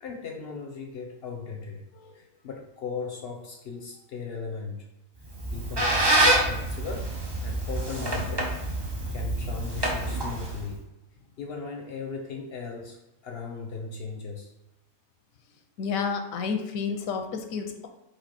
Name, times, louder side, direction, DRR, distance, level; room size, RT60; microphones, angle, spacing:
voice 1, 0.0-1.8 2.1-4.8 5.5-7.1 7.4-8.5 9.1-10.8 11.4-13.0 13.2-14.5, left 5 dB, 60° left, 2 dB, 0.7 m, -37 dB
Squeak, 5.3-10.7, right 1 dB, 30° right, 0.5 m, -26 dB
voice 2, 15.8-17.9, left 5 dB, 90° left, 5 dB, 1.0 m, -30 dB
4.4 x 2.6 x 4.3 m, 0.94 s
omnidirectional pair, 1.4 m